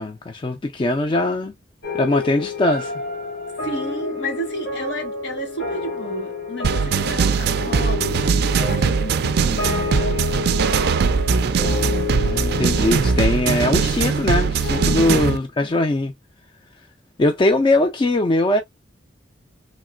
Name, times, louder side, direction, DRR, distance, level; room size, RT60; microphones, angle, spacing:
voice 1, 0.0-1.5 1.9-2.9 12.2-16.1 17.2-18.6, left 2 dB, 25° left, 0.4 m, -21 dB
sound 1, 1.8-15.1, left 4 dB, 90° left, 1.9 m, -30 dB
voice 2, 3.6-10.2 14.8-15.3, equal, 70° left, 1.5 m, -32 dB
sound 2, 6.6-15.4, right 5 dB, 60° right, 0.3 m, -20 dB
3.1 x 2.9 x 2.3 m
head